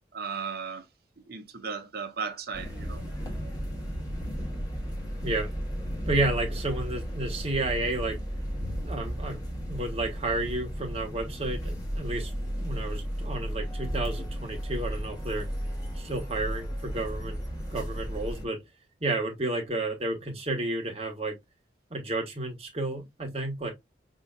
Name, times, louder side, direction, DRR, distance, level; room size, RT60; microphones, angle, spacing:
voice 1, 0.1-0.9 1.2-3.0, right 5 dB, 55° right, 0.7 m, -36 dB
sound 1, 2.5-18.4, equal, 20° left, 1.3 m, -34 dB
voice 2, 6.1-8.2 8.8-9.4 9.7-15.5 15.9-17.4 17.7-18.6 19.0-21.4 21.9-23.7, right 2 dB, 30° right, 1.1 m, -31 dB
5.3 x 2.7 x 2.4 m
head